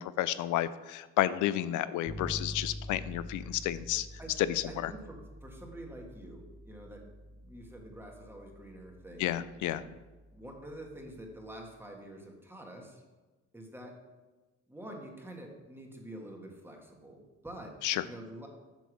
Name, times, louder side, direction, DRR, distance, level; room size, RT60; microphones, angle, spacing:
voice 1, 0.0-4.1 4.5-4.9 9.2-9.8 17.8-18.0, left 13 dB, 80° left, 15 dB, 0.5 m, -31 dB
Bass guitar, 2.1-11.7, equal, 15° left, 0.8 m, -47 dB
voice 2, 4.7-9.4 10.3-13.0 13.5-14.0 14.7-17.8 18.0-18.5, right 1 dB, 5° right, 1 dB, 1.5 m, -47 dB
7.9 x 3.5 x 6.3 m, 1.2 s
cardioid pair, 90°, 30 cm